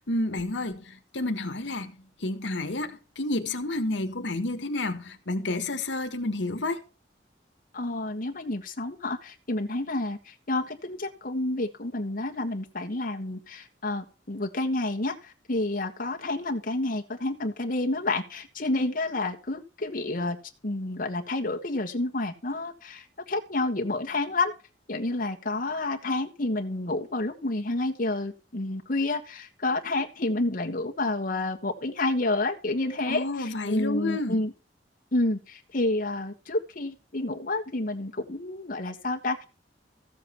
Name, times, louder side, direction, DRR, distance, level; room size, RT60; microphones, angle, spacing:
voice 1, 0.0-1.9 2.2-6.8 33.1-34.4, left 2 dB, 80° left, 1.6 m, -30 dB
voice 2, 7.7-20.4 20.6-24.5 24.9-34.5 35.1-39.4, left 2 dB, 50° left, 1.5 m, -29 dB
14.5 x 7.4 x 4.4 m
head